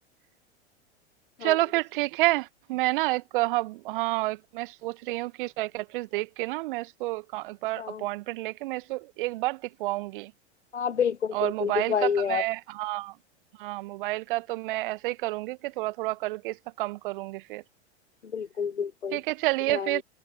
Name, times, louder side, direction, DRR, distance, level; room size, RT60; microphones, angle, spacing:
voice 1, 1.4-10.3 11.3-13.1 13.6-17.6 19.1-20.0, right 20 dB, 50° right, 1.3 m, -29 dB
voice 2, 10.7-12.4 18.3-19.2 19.7-20.0, left 7 dB, 80° left, 0.8 m, -28 dB
figure-of-eight pair, 90°, 34 cm